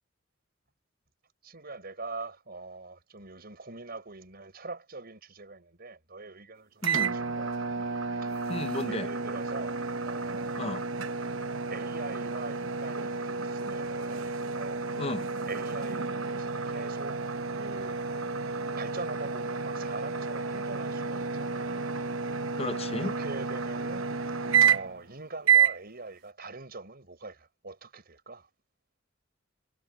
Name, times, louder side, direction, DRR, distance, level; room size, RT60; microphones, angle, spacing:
voice 1, 1.4-8.3 8.9-10.6 11.7-14.9 15.5-17.2 17.5-18.0 18.8-21.9 23.0-24.1 24.6-28.5, right 3 dB, 50° right, 5.3 m, -43 dB
voice 2, 6.8-7.1 8.5-9.1 10.6-10.8 15.0-15.3 22.5-23.1, left 2 dB, 30° left, 0.7 m, -33 dB
sound 1, 6.8-25.1 25.4-25.8, right 6 dB, 75° right, 0.9 m, -30 dB
head